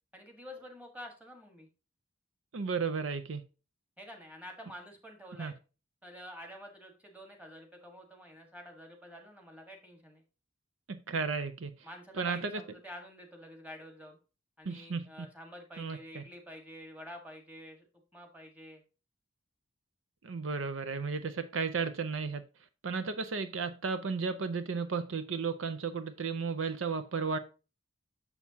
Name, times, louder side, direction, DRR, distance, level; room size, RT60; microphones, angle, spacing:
voice 1, 0.1-1.7 4.0-5.5 6.0-10.2 11.8-14.2 14.6-17.9 18.1-18.8, equal, 10° right, 1.6 m, -49 dB
voice 2, 2.5-3.4 5.4-5.5 10.9-11.7 12.2-12.6 14.7-15.3 15.8-16.2 20.2-22.4 22.8-27.4, right 5 dB, 75° right, 0.6 m, -34 dB
6.9 x 6.5 x 2.8 m
head